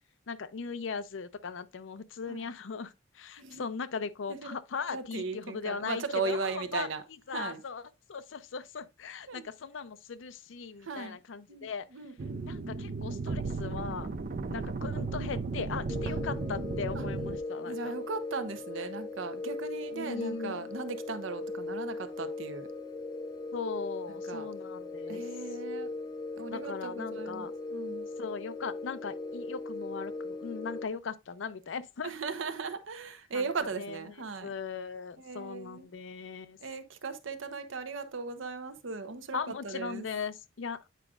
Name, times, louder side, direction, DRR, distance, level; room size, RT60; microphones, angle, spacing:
voice 1, 0.3-6.9 7.3-11.9 12.4-14.1 14.5-17.9 19.9-20.7 23.5-25.2 26.5-27.5 28.2-32.1 33.3-33.5 33.8-34.0 34.4-36.6 39.3-40.8, left 5 dB, 70° left, 0.5 m, -39 dB
voice 2, 4.9-7.0 7.3-7.6 9.3-9.4 10.8-11.2 11.5-12.5 16.1-16.2 17.0-17.1 17.6-22.7 24.3-24.5 25.1-25.9 26.4-28.1 32.0-34.5 35.2-35.9 36.6-40.1, right 4 dB, 75° right, 0.8 m, -37 dB
sound 1, 12.2-17.4, right 3 dB, 45° right, 0.5 m, -35 dB
sound 2, 15.9-30.8, left 3 dB, 20° left, 0.6 m, -39 dB
9.0 x 4.9 x 2.4 m
head